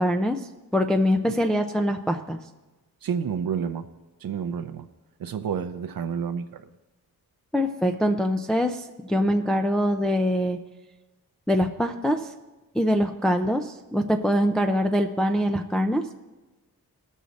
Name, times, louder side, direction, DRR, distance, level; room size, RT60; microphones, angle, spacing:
voice 1, 0.0-2.4 7.5-10.6 11.5-12.3 12.7-16.1, equal, ahead, 4 dB, 0.4 m, -24 dB
voice 2, 3.0-3.9 4.2-4.9 5.2-6.7, right 7 dB, 70° right, 9 dB, 0.6 m, -30 dB
19.0 x 6.4 x 4.0 m, 1.2 s
wide cardioid pair, 150°, 37 cm